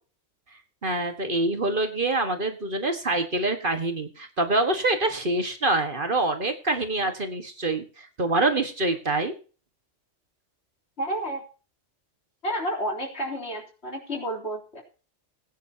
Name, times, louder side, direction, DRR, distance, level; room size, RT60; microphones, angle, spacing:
voice 1, 0.8-9.3, right 2 dB, 45° right, 7 dB, 1.7 m, -25 dB
voice 2, 11.0-11.4 12.4-14.8, equal, 60° left, 1 dB, 3.8 m, -30 dB
20.0 x 9.8 x 2.9 m, 0.36 s
omnidirectional pair, 1.2 m